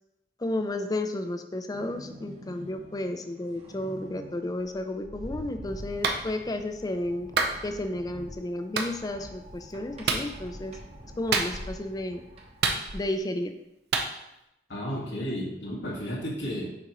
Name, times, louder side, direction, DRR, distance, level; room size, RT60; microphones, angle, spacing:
voice 1, 0.4-7.3 7.6-10.8 11.2-12.2 12.9-13.5, left 1 dB, 20° left, 7 dB, 0.4 m, -32 dB
sound 1, 1.7-13.0, equal, 35° right, 1.1 m, -46 dB
Clapping, 6.0-6.2 7.4-7.6 8.8-8.9 10.1-10.3 11.3-11.8 12.6-13.2 13.9-14.1, right 4 dB, 60° right, 0.7 m, -26 dB
voice 2, 14.7-16.7, equal, 85° left, -4 dB, 1.7 m, -33 dB
6.7 x 5.1 x 3.0 m, 0.86 s
head